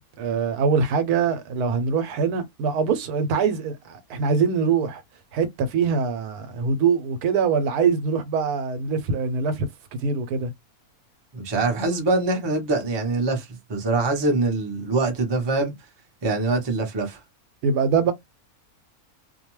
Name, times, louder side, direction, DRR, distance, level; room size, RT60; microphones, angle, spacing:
voice 1, 0.2-5.0 5.3-9.7 10.0-10.5 17.6-18.1, right 5 dB, 85° right, 1.1 m, -23 dB
voice 2, 11.3-15.7 16.2-17.2, right 3 dB, 35° right, 0.4 m, -24 dB
2.5 x 2.2 x 3.0 m
omnidirectional pair, 1.6 m